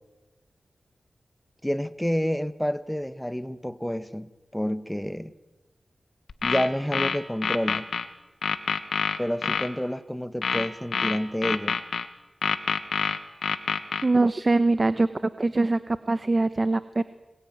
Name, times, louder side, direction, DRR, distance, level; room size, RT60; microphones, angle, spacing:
voice 1, 1.6-5.3 6.4-7.9 9.2-11.8, equal, 5° left, 13 dB, 1.4 m, -29 dB
sound 1, 6.3-8.1 8.4-9.7 10.4-12.1 12.4-14.0, left 5 dB, 90° left, 1.4 m, -26 dB
voice 2, 14.0-15.1 15.4-17.0, right 2 dB, 40° right, 12 dB, 1.0 m, -23 dB
26.0 x 21.5 x 9.4 m, 1.1 s
cardioid pair, 55°, 0 cm